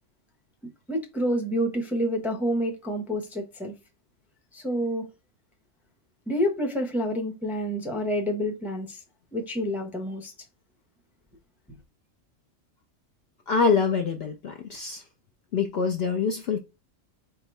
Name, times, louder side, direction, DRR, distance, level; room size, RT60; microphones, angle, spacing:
voice 1, 0.9-3.7 4.5-5.1 6.3-9.0 9.3-10.3, equal, ahead, 0.6 m, -28 dB
voice 2, 13.5-15.0 15.5-16.6, left 5 dB, 60° left, 0.7 m, -25 dB
3.6 x 2.9 x 4.5 m
omnidirectional pair, 1.4 m